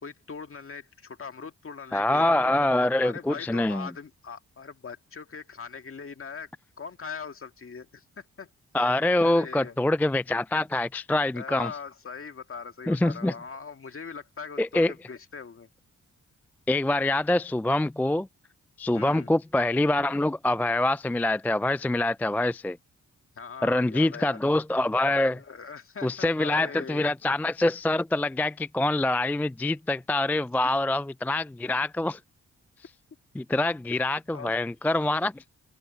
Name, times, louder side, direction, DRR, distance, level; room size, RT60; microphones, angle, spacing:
voice 1, 0.0-2.7 3.0-6.5 6.8-8.5 9.2-9.8 11.3-15.7 18.9-19.3 23.4-24.4 25.3-27.1 34.3-34.5, left 5 dB, 45° left, 2.0 m, -41 dB
voice 2, 1.9-3.9 8.7-11.7 12.9-13.3 14.6-14.9 16.7-18.3 18.8-22.8 23.6-25.4 26.0-32.2 33.4-35.4, left 2 dB, 5° left, 0.3 m, -25 dB
open air
cardioid pair, 65°, 30 cm